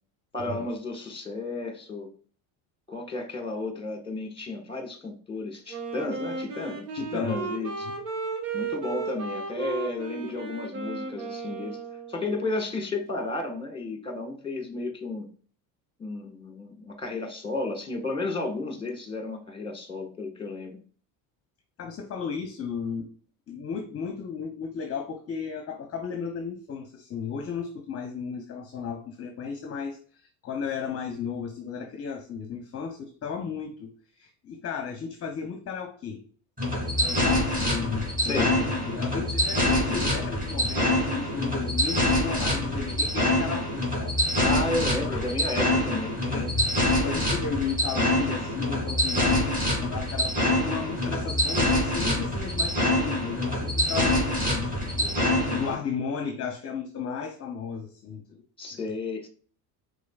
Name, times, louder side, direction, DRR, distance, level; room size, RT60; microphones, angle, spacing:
voice 1, 0.3-2.1 2.9-7.9 8.5-11.8 12.1-15.3 16.0-20.8 38.2-38.5 44.4-46.5 58.6-59.3, left 2 dB, 10° left, 5 dB, 1.4 m, -33 dB
Wind instrument woodwind instrument, 5.7-12.4, right 4 dB, 85° right, 1.4 m, -35 dB
voice 2, 7.0-7.4 7.9-8.0 21.8-23.2 23.5-33.9 34.2-36.2 37.0-44.2 46.2-58.8, left 6 dB, 30° left, 5 dB, 0.7 m, -34 dB
sound 1, 36.6-55.7, left 1 dB, 20° right, 2.2 m, -25 dB
5.0 x 3.7 x 2.3 m, 0.42 s
supercardioid pair, 90°, 47 cm